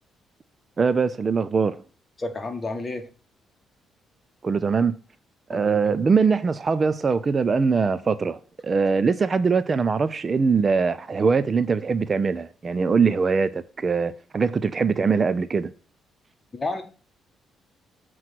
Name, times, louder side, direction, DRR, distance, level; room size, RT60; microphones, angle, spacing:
voice 1, 0.8-1.8 4.4-4.9 5.5-15.7, right 5 dB, 35° right, 0.4 m, -22 dB
voice 2, 2.2-3.1 5.5-6.0 16.5-16.8, left 2 dB, 30° left, 1.3 m, -31 dB
7.7 x 3.1 x 5.9 m
cardioid pair, 90°, 0 cm